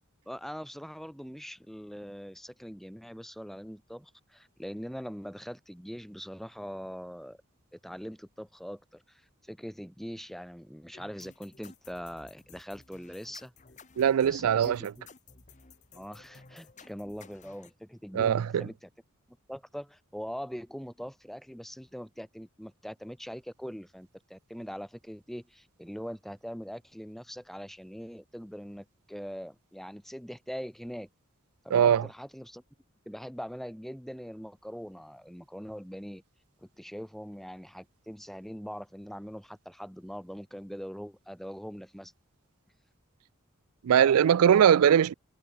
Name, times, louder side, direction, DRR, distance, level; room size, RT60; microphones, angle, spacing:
voice 1, 0.3-7.4 7.7-13.5 14.2-15.0 15.9-18.9 19.5-31.1 31.6-32.6 33.1-36.2 36.6-42.1, equal, ahead, 1.8 m, -42 dB
sound 1, 10.9-17.7, left 4 dB, 35° left, 1.5 m, -55 dB
voice 2, 14.0-14.9 18.1-18.7 31.7-32.0 43.8-45.1, right 8 dB, 90° right, 0.4 m, -21 dB
head